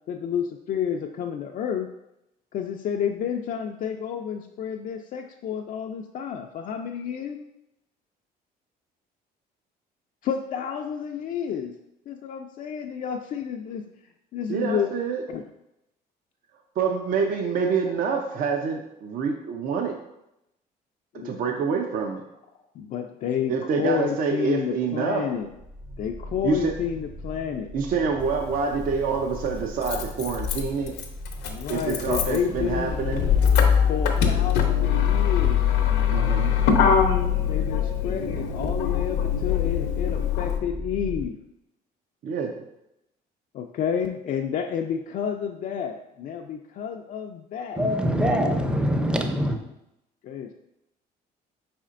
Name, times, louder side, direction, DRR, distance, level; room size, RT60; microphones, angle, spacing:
voice 1, 0.1-1.9 2.5-7.4 10.2-11.7 12.1-13.8 14.3-14.9 15.3-15.4 21.1-21.4 22.7-25.5 26.0-27.7 31.5-33.0 33.9-35.7 37.5-41.4 43.5-47.9 50.2-50.5, left 8 dB, 50° left, 0.4 m, -30 dB
voice 2, 14.5-15.2 16.8-19.9 21.2-22.2 23.5-25.2 26.4-26.7 27.7-30.9 31.7-33.2 36.1-36.5 42.2-42.5, right 5 dB, 55° right, 0.5 m, -26 dB
sound 1, 25.4-41.3, left 1 dB, 90° right, 1.4 m, -37 dB
Motor vehicle (road), 28.2-28.3 29.5-40.6, left 8 dB, 75° left, 0.7 m, -23 dB
voice 3, 47.8-49.6, equal, 5° right, 0.5 m, -23 dB
5.0 x 4.2 x 2.5 m
cardioid pair, 110°, 17 cm